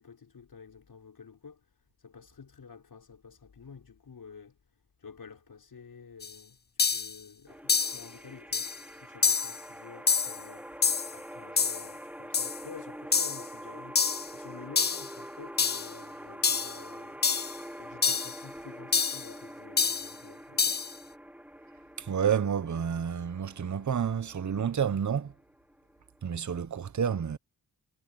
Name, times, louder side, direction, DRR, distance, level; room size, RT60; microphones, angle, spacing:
voice 1, 0.0-6.6 6.9-17.2 17.8-20.8, left 5 dB, 65° left, 5.9 m, -50 dB
sound 1, 6.2-6.3 6.8-7.1 7.7-8.0 8.5-8.8 9.2-9.6 10.1-10.4 10.8-11.1 11.6-11.9 12.3-12.6 13.1-13.4 13.9-14.3 14.8-15.1 15.6-15.9 16.4-16.8 17.2-17.6 18.0-18.4 18.9-19.3 19.8-20.1 20.6-20.9, left 5 dB, 25° left, 0.5 m, -27 dB
sound 2, 7.5-26.4, equal, 5° right, 2.7 m, -46 dB
voice 2, 22.0-25.3 26.2-27.4, right 7 dB, 50° right, 1.0 m, -29 dB
cardioid pair, 65°, 38 cm